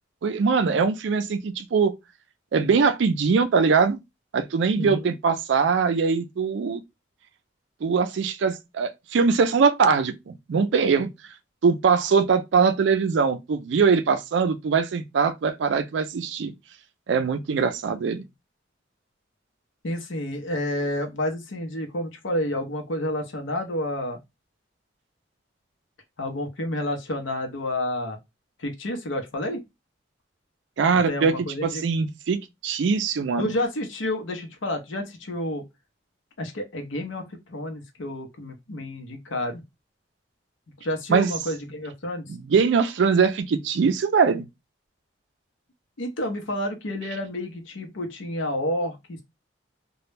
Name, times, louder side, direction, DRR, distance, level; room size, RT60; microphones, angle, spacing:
voice 1, 0.2-1.9 2.5-4.0 4.3-6.8 7.8-11.1 11.6-16.5 17.1-18.2 30.8-31.3 31.6-33.5 41.1-41.3 42.3-44.5, right 5 dB, 70° right, 0.4 m, -22 dB
voice 2, 4.8-5.1 19.8-24.2 26.2-28.2 28.6-29.6 31.1-31.9 33.4-35.6 36.4-39.6 40.8-42.2 46.0-49.2, left 1 dB, 85° left, 0.7 m, -30 dB
2.2 x 2.0 x 3.1 m
head